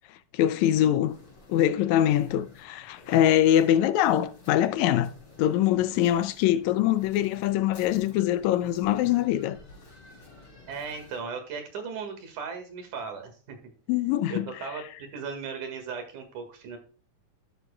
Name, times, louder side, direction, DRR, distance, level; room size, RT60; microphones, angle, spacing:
voice 1, 0.3-1.1 1.5-9.6 13.9-14.5, left 11 dB, 80° left, 1.8 m, -23 dB
sound 1, 1.0-11.2, left 3 dB, 55° left, 5.1 m, -51 dB
voice 2, 10.7-13.7 14.3-16.8, right 5 dB, 90° right, 3.2 m, -37 dB
11.5 x 7.1 x 2.2 m
omnidirectional pair, 3.4 m